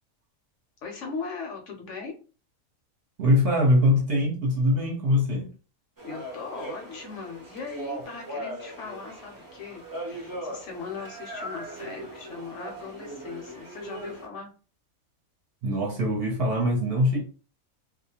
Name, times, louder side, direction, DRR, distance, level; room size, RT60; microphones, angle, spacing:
voice 1, 0.8-2.1 6.0-14.5, left 4 dB, 65° left, 0.9 m, -39 dB
voice 2, 3.2-5.5 15.6-17.2, left 1 dB, 50° right, 0.9 m, -22 dB
sound 1, 6.0-14.3, right 1 dB, 30° right, 0.4 m, -39 dB
2.4 x 2.1 x 2.8 m
omnidirectional pair, 1.4 m